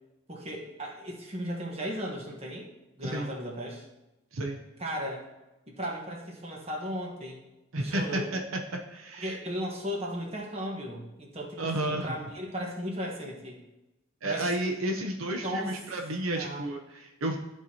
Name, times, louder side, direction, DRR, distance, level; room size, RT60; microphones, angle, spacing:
voice 1, 0.3-2.7 3.0-3.9 4.8-5.3 5.7-7.4 7.8-8.3 9.2-13.6 14.2-14.5 15.4-15.8 16.3-16.7, equal, 30° right, -1 dB, 1.3 m, -36 dB
voice 2, 7.7-8.4 8.9-9.4 11.6-12.1 14.2-17.4, right 1 dB, 80° right, 2 dB, 0.8 m, -31 dB
13.0 x 4.7 x 2.9 m, 0.99 s
head